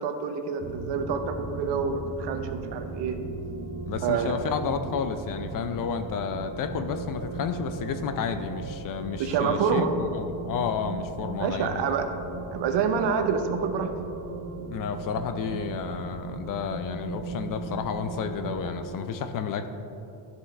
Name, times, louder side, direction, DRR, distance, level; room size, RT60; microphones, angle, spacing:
voice 1, 0.0-3.2 4.0-4.5 9.2-9.9 11.4-12.1 12.5-13.9, right 6 dB, 60° right, 6 dB, 0.9 m, -27 dB
sound 1, 0.6-18.9, right 4 dB, 25° right, 0.8 m, -37 dB
voice 2, 3.9-11.9 14.7-19.7, left 7 dB, 45° left, 8 dB, 0.5 m, -31 dB
12.5 x 5.5 x 3.2 m, 2.8 s
cardioid pair, 120°, 49 cm